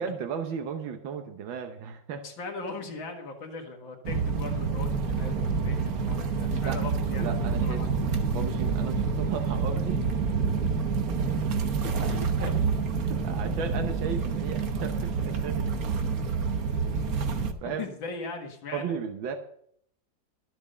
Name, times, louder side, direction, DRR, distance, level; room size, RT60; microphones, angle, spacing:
voice 1, 0.0-2.2 6.7-6.8 7.1-7.8 8.3-10.0 11.8-12.5 13.2-15.7 17.6-17.8 18.7-19.4, right 7 dB, 85° right, 6 dB, 1.7 m, -35 dB
voice 2, 2.2-7.9 12.0-12.2 16.6-17.0 17.6-19.0, left 3 dB, 90° left, 3 dB, 2.4 m, -39 dB
sound 1, 4.0-17.5, right 5 dB, 55° right, 1.4 m, -28 dB
12.5 x 7.2 x 6.5 m, 0.66 s
omnidirectional pair, 2.1 m